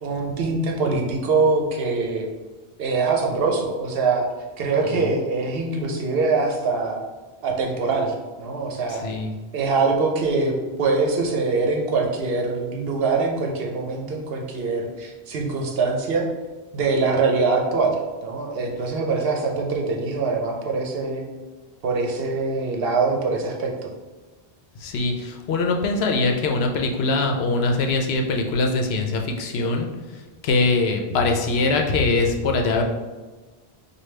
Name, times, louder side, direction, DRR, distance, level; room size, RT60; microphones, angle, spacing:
voice 1, 0.0-2.3 2.8-4.3 4.6-7.0 7.4-9.0 9.5-10.5 10.8-16.3 16.7-17.9 18.2-21.2 21.8-23.7, right 4 dB, 70° right, 1 dB, 0.9 m, -23 dB
voice 2, 8.9-9.3 24.8-29.9 30.4-32.8, left 3 dB, 80° left, 3 dB, 0.8 m, -22 dB
5.0 x 2.3 x 3.2 m, 1.2 s
omnidirectional pair, 1.1 m